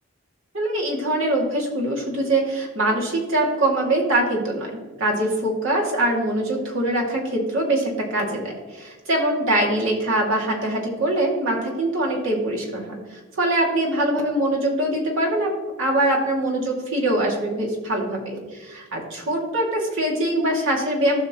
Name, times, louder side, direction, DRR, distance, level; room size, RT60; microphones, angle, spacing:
voice 1, 0.5-21.3, right 1 dB, 65° right, -2 dB, 2.4 m, -23 dB
15.5 x 5.8 x 3.0 m, 1.3 s
head